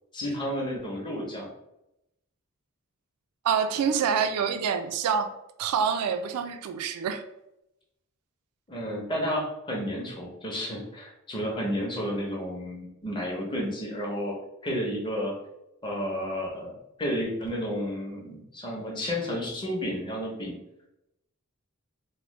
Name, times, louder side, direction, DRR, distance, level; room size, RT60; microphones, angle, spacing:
voice 1, 0.1-1.5 8.7-14.4 14.6-15.3 15.8-20.6, equal, 20° left, -1 dB, 0.6 m, -31 dB
voice 2, 3.4-5.3 5.6-7.2, right 7 dB, 80° right, 9 dB, 0.3 m, -26 dB
3.0 x 2.0 x 3.0 m, 0.86 s
head